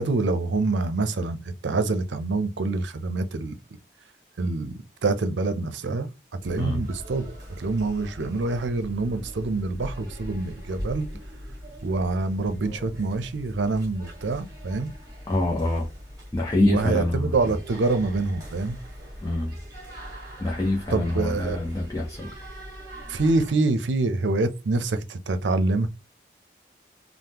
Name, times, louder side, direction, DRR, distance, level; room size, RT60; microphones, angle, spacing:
voice 1, 0.0-3.6 4.4-4.7 5.0-6.1 6.4-11.1 11.8-14.9 16.6-18.8 20.9-21.6 23.1-25.9, right 3 dB, 90° right, 0.5 m, -26 dB
sound 1, 6.4-23.5, equal, 20° right, 1.4 m, -41 dB
voice 2, 15.3-15.9 16.3-17.6 19.2-19.6 20.4-22.3, left 2 dB, 20° left, 0.5 m, -26 dB
3.5 x 2.0 x 2.8 m
head